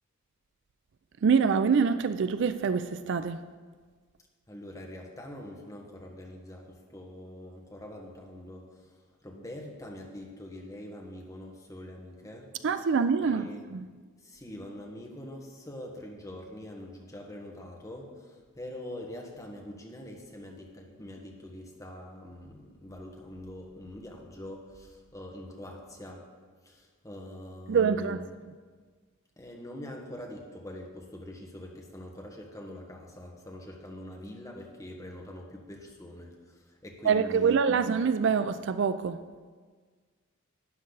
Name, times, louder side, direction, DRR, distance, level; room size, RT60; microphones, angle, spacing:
voice 1, 1.2-3.4 12.6-13.9 27.7-28.5 37.0-39.2, right 6 dB, 55° right, 12 dB, 0.4 m, -25 dB
voice 2, 4.5-8.9 9.2-12.5 13.2-13.6 14.2-26.3 26.6-28.2 29.4-37.8, left 1 dB, 15° left, 0 dB, 1.4 m, -44 dB
12.0 x 9.9 x 3.9 m, 1.5 s
head